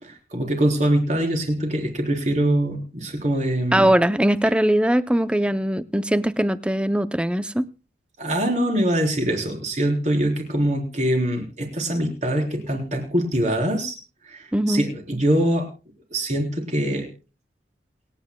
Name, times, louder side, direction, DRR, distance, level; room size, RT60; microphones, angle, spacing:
voice 1, 0.0-3.9 8.2-14.0 14.3-15.7 16.1-17.1, right 1 dB, 40° right, 3.9 m, -23 dB
voice 2, 3.7-7.7 14.5-14.9, right 1 dB, 5° right, 0.5 m, -21 dB
28.0 x 9.5 x 2.2 m
head